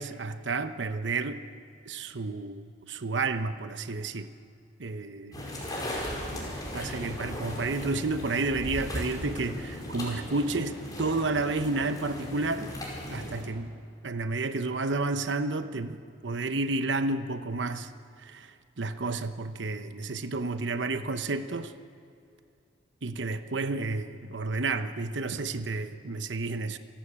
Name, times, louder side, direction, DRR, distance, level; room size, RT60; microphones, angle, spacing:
voice 1, 0.0-1.4 1.9-4.3 4.8-5.5 6.3-12.7 13.1-13.7 14.0-17.9 18.2-21.7 23.0-26.8, right 3 dB, 70° right, 10 dB, 0.9 m, -31 dB
sound 1, 5.3-13.4, left 1 dB, 20° left, 5.1 m, -37 dB
27.0 x 11.5 x 8.7 m, 2.5 s
head